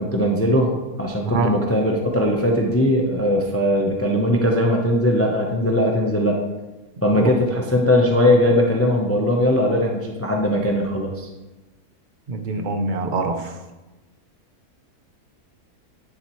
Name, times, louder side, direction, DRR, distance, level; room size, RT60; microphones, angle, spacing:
voice 1, 0.0-6.4 7.0-11.3, left 1 dB, 15° left, 0 dB, 0.7 m, -20 dB
voice 2, 12.3-13.5, right 3 dB, 40° right, 6 dB, 0.8 m, -24 dB
10.5 x 7.2 x 3.1 m, 1.1 s
omnidirectional pair, 1.6 m